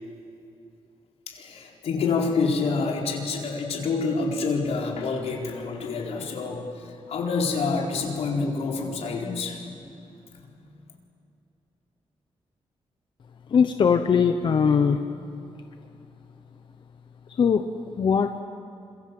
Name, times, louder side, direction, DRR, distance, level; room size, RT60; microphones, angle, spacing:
voice 1, 1.3-6.6 7.1-9.6 10.4-10.5, left 4 dB, 85° left, 0 dB, 4.5 m, -27 dB
voice 2, 13.5-15.0 17.4-17.6 18.0-18.4, left 6 dB, 50° left, 7 dB, 1.0 m, -20 dB
29.0 x 26.5 x 7.8 m, 2.6 s
wide cardioid pair, 155°, 10 cm